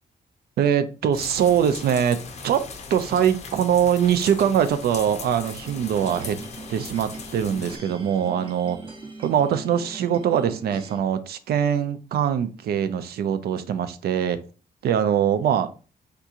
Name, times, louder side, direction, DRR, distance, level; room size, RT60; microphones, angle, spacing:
voice 1, 0.6-6.4 6.7-8.8 9.2-14.4 14.8-15.7, right 9 dB, 90° right, 0.4 m, -23 dB
sound 1, 1.1-7.8, left 4 dB, 45° left, 0.5 m, -39 dB
sound 2, 5.3-11.0, right 3 dB, 30° right, 0.7 m, -41 dB
3.6 x 2.8 x 2.4 m
wide cardioid pair, 165°, 16 cm